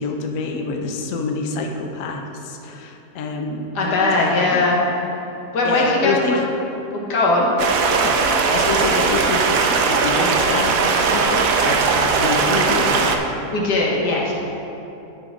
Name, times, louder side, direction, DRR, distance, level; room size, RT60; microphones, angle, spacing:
voice 1, 0.0-4.7 5.6-6.5 8.0-13.1, left 3 dB, 60° left, 3 dB, 1.0 m, -27 dB
voice 2, 3.8-4.8 5.5-6.2 6.9-7.5 13.5-14.3, left 2 dB, 85° left, -3 dB, 2.0 m, -19 dB
Stream, 7.6-13.2, right 4 dB, 65° right, 1.0 m, -19 dB
11.5 x 4.7 x 5.0 m, 2.9 s
omnidirectional pair, 1.7 m